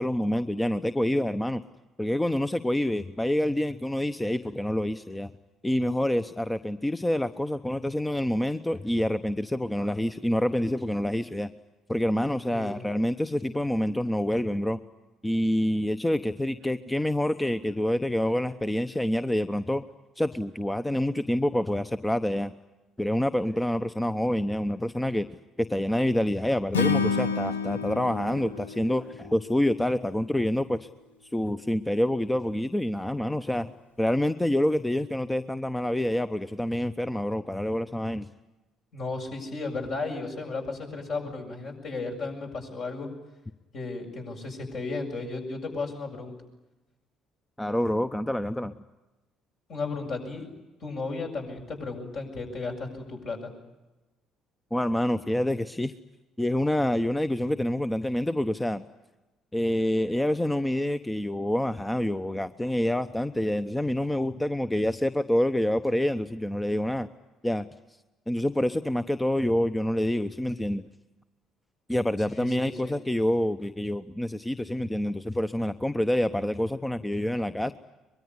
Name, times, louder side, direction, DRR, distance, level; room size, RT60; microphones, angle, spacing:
voice 1, 0.0-1.6 2.0-5.3 5.6-11.5 11.9-14.8 15.2-19.8 20.2-22.5 23.0-25.3 25.6-30.9 31.3-33.7 34.0-38.3 47.6-48.7 54.7-55.9 56.4-58.8 59.5-67.1 67.4-67.7 68.3-70.9 71.9-77.7, left 1 dB, 10° left, 12 dB, 0.9 m, -27 dB
voice 2, 12.5-12.9 38.9-43.1 43.7-46.4 49.7-50.5 50.8-53.5 72.4-72.9, left 3 dB, 55° left, 2 dB, 7.4 m, -34 dB
Acoustic guitar / Strum, 26.7-30.0, left 5 dB, 85° left, 0.9 m, -29 dB
23.5 x 22.5 x 9.8 m, 1.1 s
figure-of-eight pair, 50°, 0 cm